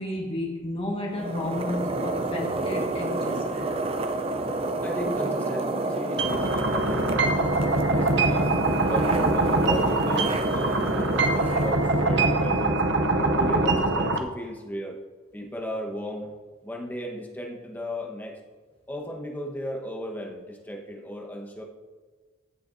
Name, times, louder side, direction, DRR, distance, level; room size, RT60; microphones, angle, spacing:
voice 1, 0.0-3.8, left 1 dB, 30° left, 0 dB, 1.6 m, -32 dB
sound 1, 1.1-12.7, right 2 dB, 30° right, 0.5 m, -30 dB
voice 2, 4.8-7.1 7.9-8.5 8.9-12.8 13.2-15.0 15.3-16.3 16.6-18.4 18.9-21.6, equal, 10° left, 0 dB, 1.2 m, -35 dB
sound 2, 6.2-14.2, right 2 dB, 60° right, 0.8 m, -23 dB
15.0 x 6.9 x 2.7 m, 1.4 s
head